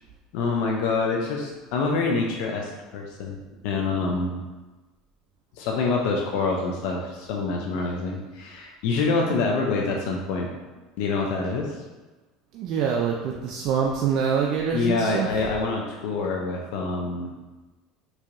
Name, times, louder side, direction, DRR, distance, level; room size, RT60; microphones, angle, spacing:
voice 1, 0.3-3.4 3.6-4.4 5.6-10.5 11.0-11.8 14.7-17.3, left 4 dB, 70° left, 0 dB, 0.4 m, -26 dB
voice 2, 12.5-15.3, right 7 dB, 55° right, 0 dB, 0.4 m, -25 dB
4.6 x 2.8 x 2.5 m, 1.2 s
supercardioid pair, 120°, 0 cm